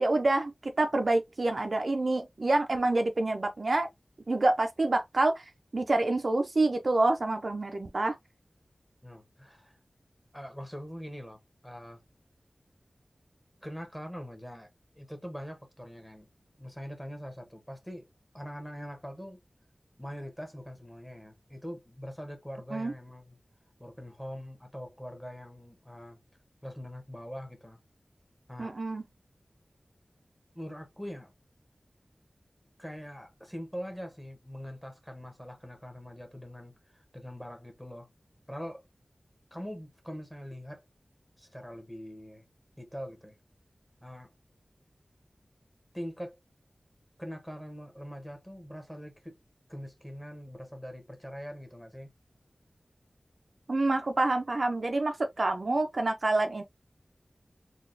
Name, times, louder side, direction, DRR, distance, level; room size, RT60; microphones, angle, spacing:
voice 1, 0.0-3.9 4.3-5.5 5.7-8.2 22.7-22.9 28.6-29.0 53.7-56.6, right 2 dB, 60° right, 0.5 m, -27 dB
voice 2, 9.0-9.8 10.3-12.0 13.6-14.7 15.0-16.3 16.6-18.1 18.3-19.4 20.0-23.4 23.8-26.2 26.6-27.8 28.5-28.8 30.5-31.3 32.8-38.1 38.5-38.8 39.5-40.8 41.4-42.4 42.8-43.4 44.0-44.3 45.9-46.4 47.2-49.4 49.7-52.1, equal, 5° left, 1.0 m, -43 dB
3.9 x 2.3 x 2.5 m
wide cardioid pair, 75°, 0 cm